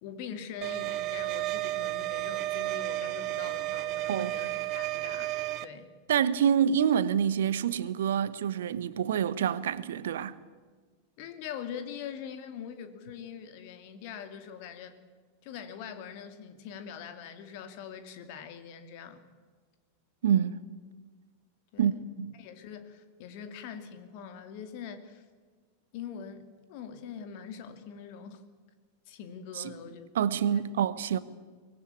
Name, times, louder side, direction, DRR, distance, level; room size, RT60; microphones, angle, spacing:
voice 1, 0.0-5.3 5.6-5.9 11.2-15.0 15.4-19.2 21.7-22.0 22.4-25.2 25.9-28.4 29.1-30.1 30.5-30.6, left 7 dB, 45° left, 2.6 m, -43 dB
sound 1, 0.6-5.6, right 17 dB, 40° right, 0.9 m, -32 dB
voice 2, 6.1-10.4 20.2-20.6 21.8-21.9 22.2-22.3 29.6-29.7 30.1-31.2, right 8 dB, 60° right, 1.1 m, -27 dB
24.0 x 19.5 x 8.5 m
figure-of-eight pair, 90°, 0 cm